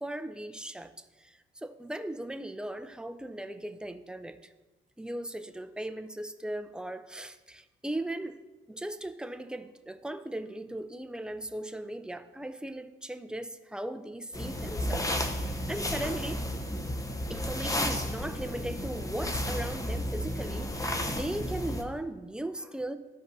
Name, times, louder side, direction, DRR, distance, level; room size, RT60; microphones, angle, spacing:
voice 1, 0.0-4.5 5.0-8.4 8.7-15.1 15.4-16.4 17.3-23.0, right 1 dB, 5° right, 0.5 m, -38 dB
sound 1, 14.3-21.8, left 1 dB, 15° left, 0.8 m, -32 dB
13.5 x 5.1 x 2.7 m
cardioid pair, 90°, 20 cm